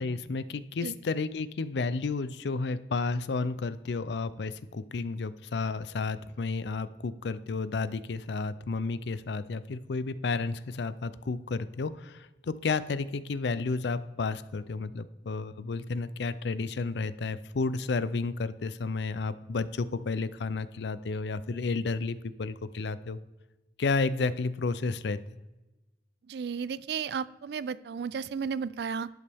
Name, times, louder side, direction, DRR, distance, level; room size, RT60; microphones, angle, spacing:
voice 1, 0.0-23.2 23.8-25.2, left 4 dB, 75° left, 15 dB, 0.5 m, -32 dB
voice 2, 26.3-29.1, right 6 dB, 65° right, 19 dB, 0.3 m, -33 dB
11.0 x 8.2 x 3.5 m, 1.1 s
head